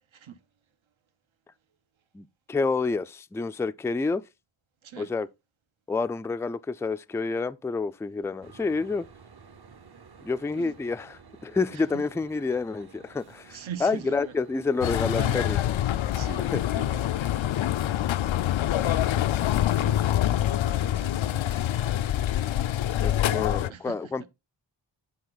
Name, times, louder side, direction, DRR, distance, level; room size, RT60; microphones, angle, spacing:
voice 1, 0.1-0.4 4.8-5.1 10.6-10.8 11.7-12.1 13.5-14.3 14.8-15.5 16.1-17.3 19.8-21.7 23.7-24.3, right 8 dB, 75° right, 1.1 m, -43 dB
voice 2, 2.1-4.2 5.0-5.3 5.9-9.1 10.2-15.6 16.4-16.6 23.0-24.3, left 4 dB, 5° left, 0.3 m, -29 dB
sound 1, 8.4-17.6, right 5 dB, 50° right, 1.0 m, -52 dB
sound 2, 14.8-23.7, left 12 dB, 75° left, 0.5 m, -25 dB
10.5 x 4.4 x 4.0 m
wide cardioid pair, 85°, 48 cm